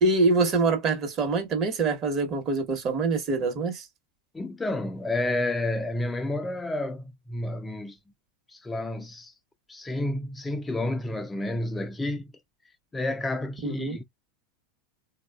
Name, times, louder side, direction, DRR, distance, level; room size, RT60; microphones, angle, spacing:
voice 1, 0.0-3.9 13.6-14.0, right 3 dB, 35° right, 1.0 m, -25 dB
voice 2, 4.3-8.0 8.5-9.3 9.7-12.3 12.9-14.0, left 1 dB, 10° left, 0.3 m, -30 dB
3.4 x 2.3 x 2.2 m
hypercardioid pair, 115°, 0 cm